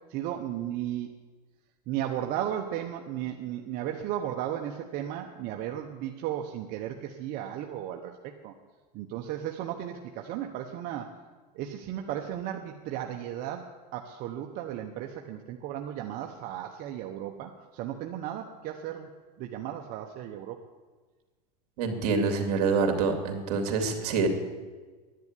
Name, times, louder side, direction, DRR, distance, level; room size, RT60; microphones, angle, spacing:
voice 1, 0.1-1.1 1.9-8.5 8.9-11.1 11.5-19.1 19.4-20.6, right 11 dB, 40° right, 3 dB, 1.0 m, -35 dB
voice 2, 21.8-24.3, right 4 dB, 65° right, 5 dB, 2.8 m, -26 dB
10.5 x 10.5 x 9.8 m, 1.4 s
supercardioid pair, 150°, 21 cm